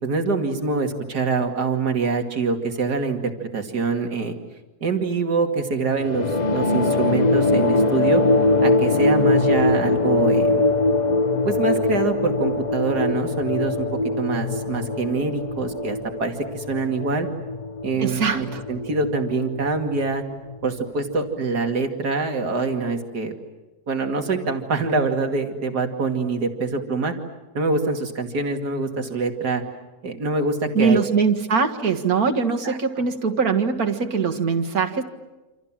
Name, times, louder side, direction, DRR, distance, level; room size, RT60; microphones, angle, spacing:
voice 1, 0.0-4.3 4.8-8.2 8.6-10.6 11.4-13.9 14.2-17.3 17.8-20.2 20.6-23.3 23.9-27.1 27.5-29.6 30.0-31.0 32.6-32.8, right 3 dB, 80° right, 5 dB, 2.9 m, -25 dB
sound 1, 6.0-20.9, left 2 dB, 30° left, 1.0 m, -22 dB
voice 2, 18.0-18.6 30.7-35.0, right 5 dB, 65° right, 7 dB, 2.2 m, -22 dB
28.5 x 27.0 x 7.5 m, 1.1 s
omnidirectional pair, 1.7 m